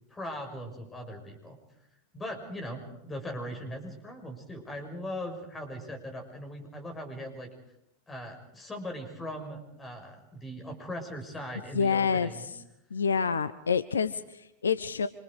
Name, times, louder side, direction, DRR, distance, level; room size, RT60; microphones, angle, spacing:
voice 1, 0.1-1.6 2.1-7.5 8.1-12.5, equal, 15° left, 4 dB, 6.4 m, -39 dB
voice 2, 11.7-12.6 12.9-15.1, left 6 dB, 70° left, 14 dB, 0.9 m, -28 dB
27.0 x 26.5 x 5.0 m, 0.83 s
figure-of-eight pair, 90°, 0 cm